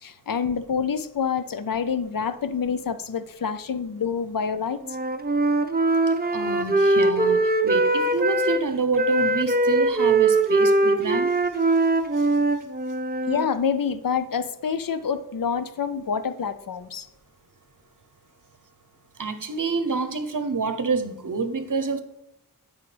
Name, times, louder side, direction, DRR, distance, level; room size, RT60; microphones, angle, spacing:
voice 1, 0.0-4.8 13.3-17.1, left 6 dB, 65° left, 0.5 m, -27 dB
Wind instrument woodwind instrument, 4.8-8.6 8.9-13.5, right 2 dB, 25° right, 0.6 m, -21 dB
voice 2, 6.3-11.3 12.2-12.3 19.2-22.0, right 4 dB, 60° right, 0.8 m, -27 dB
14.0 x 4.8 x 3.3 m
wide cardioid pair, 50°, 37 cm